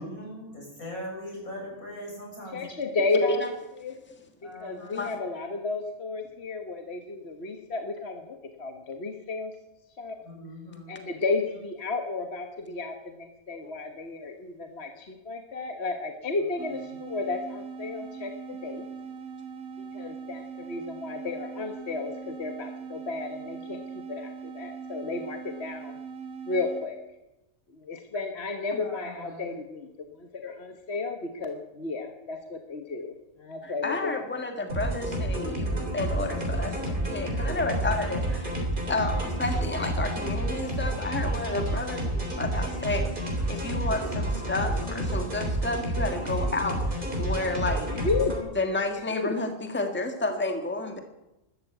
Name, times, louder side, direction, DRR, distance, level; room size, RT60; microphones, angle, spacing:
voice 1, 0.0-2.7 4.4-5.1 10.3-11.1 28.8-29.5, equal, 85° left, -1 dB, 6.9 m, -40 dB
voice 2, 2.5-3.4 3.8-4.0 4.4-9.5 10.0-10.2 10.9-18.9 19.8-26.0 26.5-27.0 27.7-34.3 47.9-48.4 49.1-49.4, left 3 dB, 50° left, 5 dB, 1.5 m, -33 dB
sound 1, 16.6-27.0, right 6 dB, 80° right, 1.7 m, -41 dB
voice 3, 33.6-43.1 43.5-46.8 47.2-47.9 48.5-51.0, left 2 dB, 10° left, 5 dB, 1.6 m, -31 dB
sound 2, 34.7-48.4, right 1 dB, 35° right, 3.7 m, -29 dB
13.0 x 12.5 x 8.1 m, 0.95 s
omnidirectional pair, 1.4 m